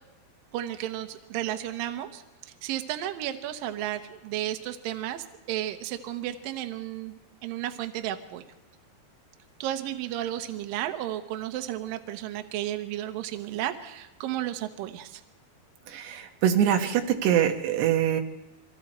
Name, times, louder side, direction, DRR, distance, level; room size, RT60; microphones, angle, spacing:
voice 1, 0.5-2.2 2.6-8.4 9.6-15.2, right 12 dB, 70° right, 7 dB, 2.5 m, -33 dB
voice 2, 15.9-18.2, right 10 dB, 85° right, 4 dB, 3.4 m, -24 dB
27.0 x 24.0 x 4.3 m, 1.0 s
omnidirectional pair, 4.7 m